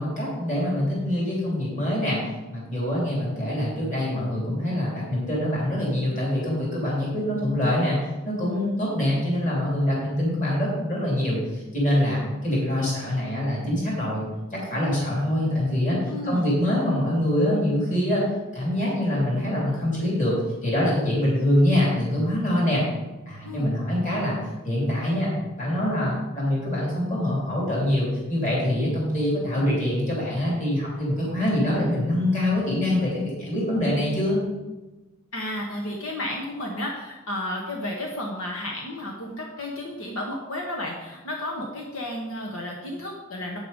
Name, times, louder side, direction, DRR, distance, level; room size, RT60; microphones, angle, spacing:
voice 1, 0.0-2.2 2.5-8.0 8.2-14.3 14.5-16.0 16.2-18.2 18.5-20.3 20.6-22.8 23.3-24.3 24.6-25.3 25.6-34.4, left 1 dB, 40° left, -5 dB, 2.9 m, -24 dB
voice 2, 16.1-16.5 23.4-23.7 35.3-43.6, left 1 dB, 85° left, 0 dB, 1.2 m, -32 dB
8.5 x 6.7 x 5.2 m, 1.1 s
head